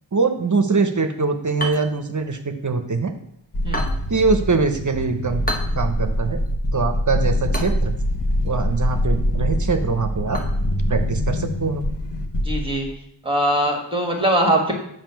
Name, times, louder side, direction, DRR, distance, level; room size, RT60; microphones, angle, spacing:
voice 1, 0.1-3.1 4.1-5.4 5.8-6.4 6.7-7.9 8.4-10.4 10.9-11.9, right 4 dB, 45° right, 7 dB, 0.7 m, -22 dB
sound 1, 1.5-11.6, equal, 20° left, 0.9 m, -37 dB
sound 2, 3.5-12.9, equal, 70° left, 1.0 m, -24 dB
voice 2, 12.4-12.9 13.2-14.7, right 1 dB, 10° right, 1 dB, 1.5 m, -21 dB
7.4 x 2.7 x 5.7 m, 0.76 s
wide cardioid pair, 50°, 44 cm